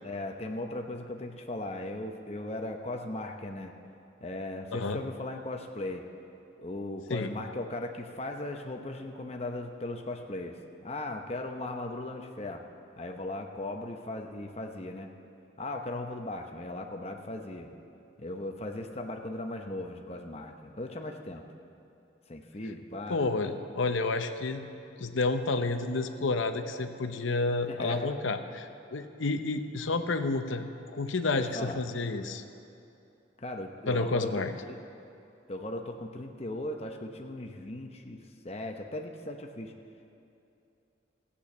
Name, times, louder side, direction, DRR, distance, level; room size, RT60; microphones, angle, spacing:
voice 1, 0.0-3.7 4.2-6.1 6.6-10.6 10.8-12.6 13.0-15.1 15.6-17.7 18.2-21.4 22.3-23.2 27.7-28.1 31.4-31.8 33.4-34.8 35.5-38.2 38.4-39.7, left 1 dB, 35° left, 3 dB, 0.9 m, -37 dB
voice 2, 23.1-24.7 25.0-30.6 30.9-32.4 33.9-34.5, left 3 dB, 85° left, 8 dB, 0.8 m, -30 dB
14.5 x 8.6 x 7.3 m, 2.8 s
head